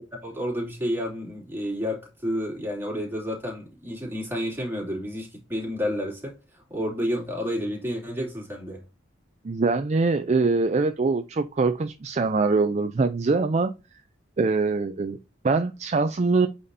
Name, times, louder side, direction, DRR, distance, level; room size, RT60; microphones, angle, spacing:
voice 1, 0.2-8.8, equal, 10° right, 2.9 m, -30 dB
voice 2, 9.4-13.7 14.4-15.2 15.4-16.5, right 3 dB, 35° right, 0.4 m, -23 dB
8.3 x 4.2 x 2.7 m
head